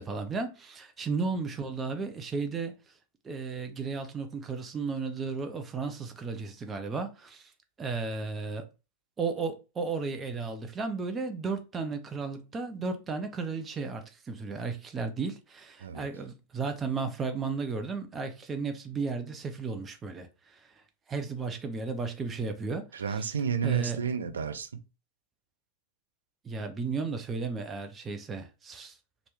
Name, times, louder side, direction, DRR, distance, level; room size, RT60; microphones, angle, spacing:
voice 1, 0.0-2.7 3.2-7.5 7.8-8.7 9.2-20.6 21.1-22.8 23.6-24.0 26.4-28.9, right 4 dB, 20° right, 0.6 m, -34 dB
voice 2, 22.9-24.8, right 7 dB, 70° right, 0.4 m, -31 dB
2.9 x 2.1 x 3.4 m
figure-of-eight pair, 90°, 0 cm